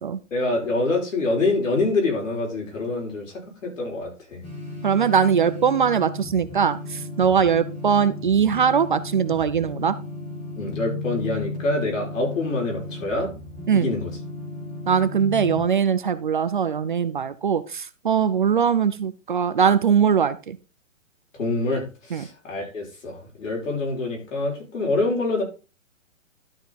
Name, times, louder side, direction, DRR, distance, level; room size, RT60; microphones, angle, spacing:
voice 1, 0.3-4.4 10.6-13.4 13.7-14.1 21.4-25.4, left 2 dB, 75° left, 5.9 m, -26 dB
sound 1, 4.4-15.6, left 2 dB, 15° left, 2.2 m, -35 dB
voice 2, 4.8-10.0 13.7-13.9 14.9-20.6 22.1-22.3, right 7 dB, 40° right, 0.5 m, -21 dB
12.0 x 5.8 x 4.0 m
hypercardioid pair, 165°, 39 cm